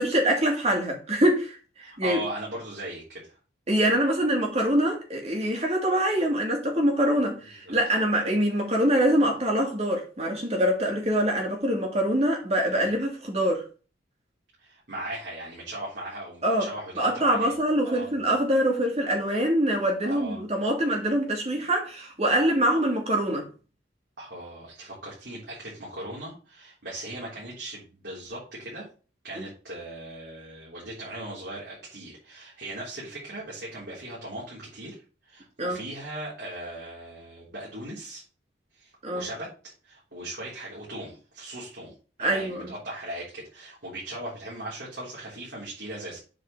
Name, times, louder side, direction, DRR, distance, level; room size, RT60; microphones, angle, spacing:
voice 1, 0.0-2.2 3.7-13.6 16.4-16.7 17.0-23.5 29.4-29.5 35.6-35.8 39.0-39.3 42.2-42.7, right 1 dB, 35° right, 2.6 m, -24 dB
voice 2, 1.8-3.4 7.6-7.8 12.7-12.9 14.6-17.5 17.8-18.2 20.0-20.4 24.2-28.9 29.2-35.0 35.3-38.2 38.8-46.2, right 1 dB, 70° right, 3.7 m, -38 dB
7.7 x 4.8 x 5.5 m
head